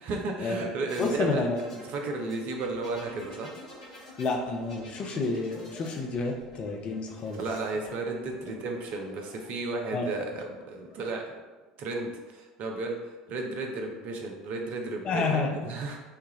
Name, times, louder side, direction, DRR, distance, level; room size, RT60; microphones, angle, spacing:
voice 1, 0.0-1.5 1.8-3.5 7.4-11.3 11.8-13.0 13.3-16.0, right 3 dB, 50° right, 2 dB, 0.6 m, -33 dB
sound 1, 0.9-9.4 10.5-11.1, left 2 dB, 90° left, 1.4 m, -49 dB
voice 2, 1.0-1.6 4.2-7.4 9.9-10.1 15.0-15.5, left 3 dB, 35° left, 1 dB, 0.7 m, -29 dB
5.6 x 2.4 x 3.0 m, 1.2 s
figure-of-eight pair, 65°, 3 cm